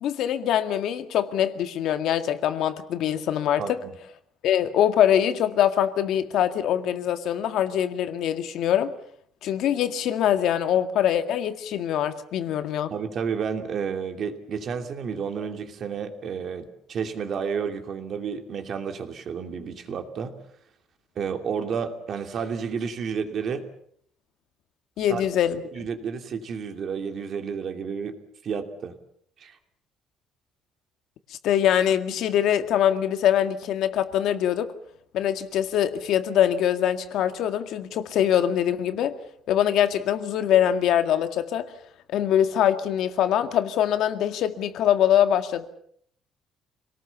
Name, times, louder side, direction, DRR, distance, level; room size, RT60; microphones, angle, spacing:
voice 1, 0.0-3.8 4.4-8.9 9.4-12.9 25.0-25.6 31.3-34.7 35.1-39.2 39.5-41.7 42.1-45.7, left 10 dB, 65° left, 9 dB, 1.9 m, -23 dB
voice 2, 3.6-3.9 12.9-20.4 21.2-23.6 25.1-25.2 25.7-28.2 28.4-28.9 29.4-29.6, right 6 dB, 45° right, 6 dB, 2.7 m, -31 dB
26.5 x 18.5 x 7.1 m, 0.67 s
cardioid pair, 155°, 0 cm